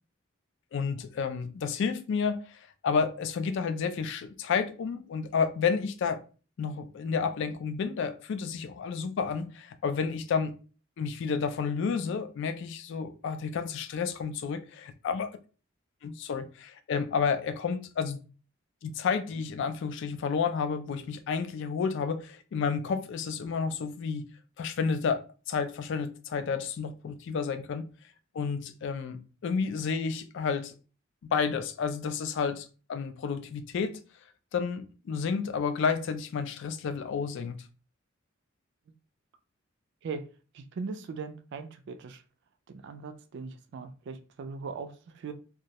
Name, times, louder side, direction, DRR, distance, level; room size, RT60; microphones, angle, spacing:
voice 1, 0.7-6.2 6.6-10.5 11.0-15.3 16.0-18.2 18.8-24.3 24.6-27.9 28.3-30.7 31.3-34.0 34.5-37.6, left 5 dB, 60° left, 0.3 m, -31 dB
voice 2, 40.5-42.2 42.7-45.3, right 4 dB, 60° right, 0.3 m, -39 dB
2.3 x 2.0 x 2.8 m
head